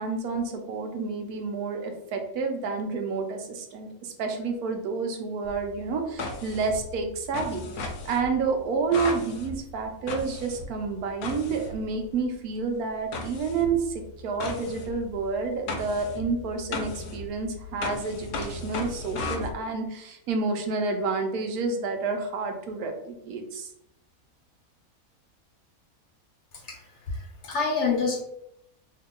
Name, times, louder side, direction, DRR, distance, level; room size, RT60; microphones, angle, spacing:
voice 1, 0.0-23.7, right 4 dB, 85° right, 4 dB, 1.1 m, -29 dB
sound 1, 5.4-12.3 13.1-19.5, left 3 dB, 80° left, 1.1 m, -36 dB
voice 2, 26.5-28.2, left 4 dB, 60° left, 0 dB, 0.9 m, -28 dB
2.8 x 2.7 x 3.6 m, 0.78 s
omnidirectional pair, 1.6 m